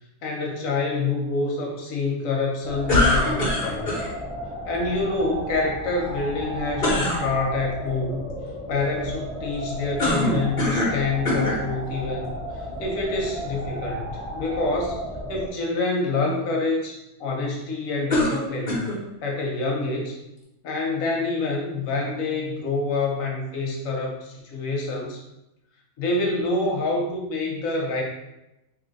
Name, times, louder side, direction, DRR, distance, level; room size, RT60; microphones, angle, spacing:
voice 1, 0.2-3.9 4.6-8.3 8.7-15.0 15.3-18.9 19.2-20.1 20.6-25.2 26.0-28.0, left 3 dB, 85° left, -1 dB, 1.2 m, -27 dB
sound 1, 2.6-15.5, equal, 30° right, 0.9 m, -34 dB
sound 2, 2.9-4.1 6.8-7.2 10.0-11.0 11.3-11.6 12.4-12.5 18.1-19.0, left 1 dB, 40° left, 1.1 m, -22 dB
3.2 x 2.8 x 3.9 m, 0.91 s
omnidirectional pair, 1.4 m